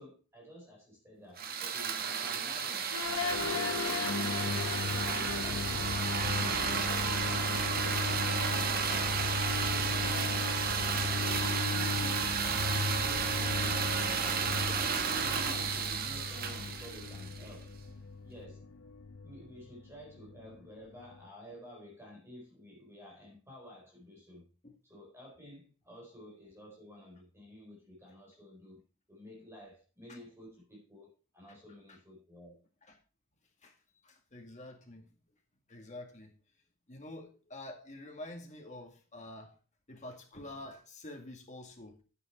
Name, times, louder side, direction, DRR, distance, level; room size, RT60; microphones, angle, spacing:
voice 1, 0.0-2.9 3.4-5.9 6.5-13.8 14.6-17.7 18.2-18.6 19.2-24.5 24.9-28.8 29.1-32.6, equal, 10° right, -3 dB, 4.2 m, -51 dB
sound 1, 1.4-17.5, right 6 dB, 45° right, 1.2 m, -33 dB
sound 2, 2.9-21.2, left 4 dB, 90° left, 0.8 m, -36 dB
voice 2, 9.8-10.2 24.6-24.8 30.1-30.2 31.5-31.6 31.9-32.0 32.8-33.0 33.6-33.8 34.0-35.3 35.7-39.6 39.9-42.0, left 1 dB, 35° left, 3 dB, 2.2 m, -48 dB
9.2 x 8.7 x 4.4 m, 0.34 s
head